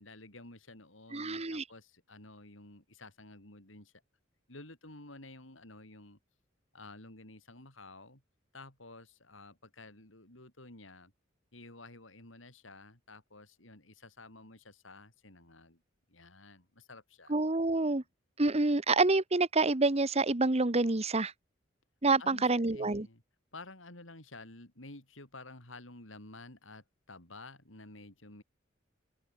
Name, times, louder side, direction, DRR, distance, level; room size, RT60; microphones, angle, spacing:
voice 1, 0.0-3.9 4.5-6.2 6.7-8.2 8.5-11.1 11.5-15.8 16.1-17.3 22.2-23.2 23.5-28.4, left 2 dB, 85° left, 6.0 m, -52 dB
voice 2, 1.1-1.6 17.3-18.0 18.4-21.3 22.0-23.1, right 3 dB, 35° right, 1.2 m, -27 dB
open air
head